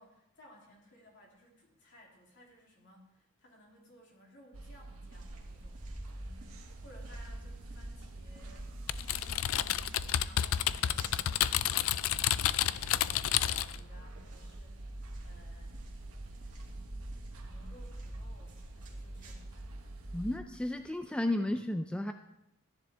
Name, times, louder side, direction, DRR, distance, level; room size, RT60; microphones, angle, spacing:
voice 1, 0.0-8.7 9.0-14.9 15.2-15.8 16.6-19.6, equal, 60° left, -2 dB, 3.0 m, -59 dB
sound 1, 4.5-20.4, right 1 dB, 75° right, 1.1 m, -45 dB
sound 2, 5.1-21.0, right 1 dB, 40° right, 2.2 m, -53 dB
Typing, 8.9-13.8, left 11 dB, 75° left, 0.4 m, -30 dB
voice 2, 20.1-22.1, left 1 dB, 5° left, 7 dB, 0.4 m, -33 dB
14.0 x 10.0 x 3.4 m, 0.81 s
head